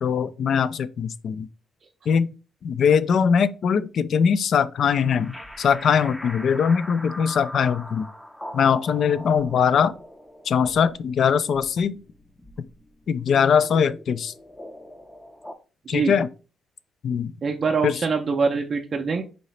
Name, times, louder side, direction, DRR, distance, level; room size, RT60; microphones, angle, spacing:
voice 1, 0.0-1.5 2.1-2.3 2.6-8.1 8.5-9.9 10.5-12.0 13.1-14.3 15.9-16.3 17.0-17.3 17.8-18.0, left 7 dB, 60° left, 0.3 m, -21 dB
sound 1, 4.8-15.6, left 1 dB, 10° left, 0.5 m, -41 dB
voice 2, 17.4-19.2, right 5 dB, 45° right, 0.5 m, -24 dB
4.0 x 2.8 x 3.1 m
cardioid pair, 90°, 0 cm